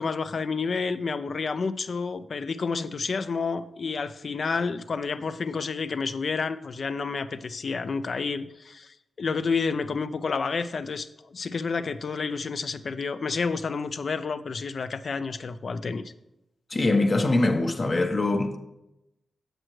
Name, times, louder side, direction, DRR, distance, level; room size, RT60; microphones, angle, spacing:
voice 1, 0.0-16.0, left 4 dB, 60° left, 0.4 m, -30 dB
voice 2, 16.7-18.6, left 2 dB, 40° left, 0.8 m, -23 dB
7.6 x 6.4 x 3.1 m
cardioid pair, 55°, 0 cm